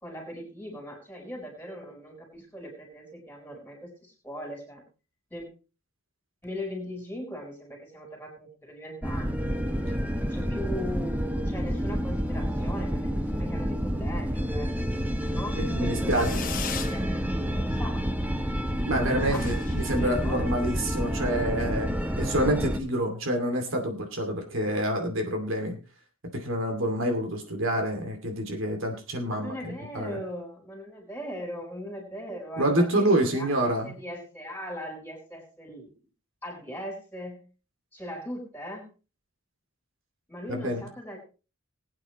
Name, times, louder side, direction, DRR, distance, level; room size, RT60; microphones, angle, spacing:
voice 1, 0.0-4.8 5.3-5.5 6.4-9.5 10.2-14.7 15.3-16.4 16.7-18.0 19.3-19.5 19.8-20.7 29.2-33.0 33.3-35.9 36.4-37.4 37.9-38.9 40.3-41.2, equal, 10° left, 1 dB, 4.5 m, -39 dB
sound 1, 9.0-22.8, equal, 5° right, 0.9 m, -29 dB
voice 2, 15.6-16.5 18.8-21.9 22.2-25.8 26.3-30.2 32.6-34.0 40.5-40.8, right 1 dB, 65° right, 3 dB, 2.5 m, -27 dB
Fireworks, 16.1-17.0 17.4-17.9 18.2-18.3 18.5-18.6 18.9-19.0 19.2-20.9, left 7 dB, 40° left, 1.1 m, -38 dB
20.5 x 8.9 x 3.1 m, 0.33 s
head